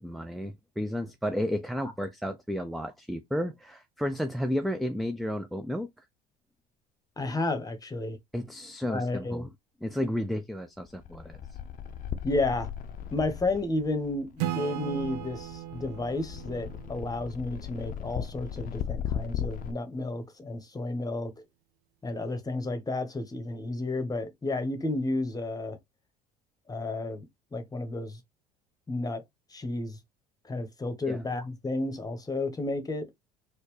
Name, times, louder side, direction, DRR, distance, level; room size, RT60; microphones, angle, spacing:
voice 1, 0.0-5.9 8.3-9.5 9.8-11.4 31.1-31.2, equal, ahead, 0.4 m, -32 dB
voice 2, 7.2-8.2 8.9-9.5 12.2-12.7 13.1-21.3 22.0-25.8 26.7-27.2 27.5-28.2 28.9-29.2 29.5-30.0 30.4-33.1, left 2 dB, 20° left, 1.1 m, -32 dB
sound 1, 10.8-19.7, left 9 dB, 45° left, 0.6 m, -38 dB
Acoustic guitar / Strum, 14.4-17.9, right 13 dB, 80° right, 0.4 m, -37 dB
4.2 x 2.3 x 3.2 m
hypercardioid pair, 65°, 20 cm